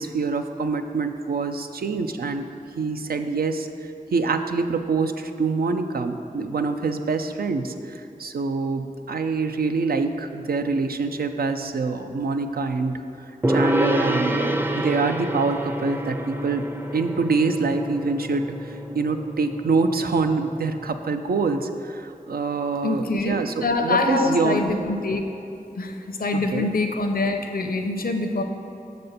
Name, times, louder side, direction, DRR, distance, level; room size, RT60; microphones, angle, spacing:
voice 1, 0.0-2.5 2.8-3.7 4.1-13.0 13.5-16.7 16.9-24.6 26.5-26.7, right 4 dB, 85° right, 7 dB, 0.4 m, -25 dB
Gong, 13.4-20.9, right 1 dB, 15° right, 0.5 m, -28 dB
voice 2, 22.8-25.2 25.8-28.4, left 2 dB, 75° left, 5 dB, 0.6 m, -25 dB
6.7 x 4.3 x 6.5 m, 2.9 s
wide cardioid pair, 45°, 15 cm